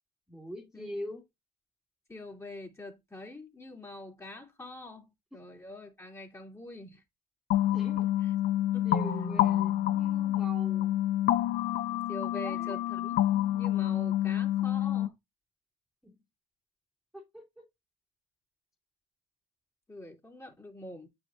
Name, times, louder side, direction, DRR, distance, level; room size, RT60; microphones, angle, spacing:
voice 1, 0.3-1.2 7.7-8.1 8.8-10.9 12.3-12.9 16.0-16.2 17.1-17.6, equal, ahead, 2.3 m, -43 dB
voice 2, 2.1-7.0 8.0-8.3 8.7-8.9 11.9-13.2 13.5-15.2 19.9-21.1, left 1 dB, 15° left, 2.7 m, -44 dB
sound 1, 7.5-15.1, left 12 dB, 70° left, 0.8 m, -28 dB
9.0 x 5.0 x 2.5 m
cardioid pair, 110°, 17 cm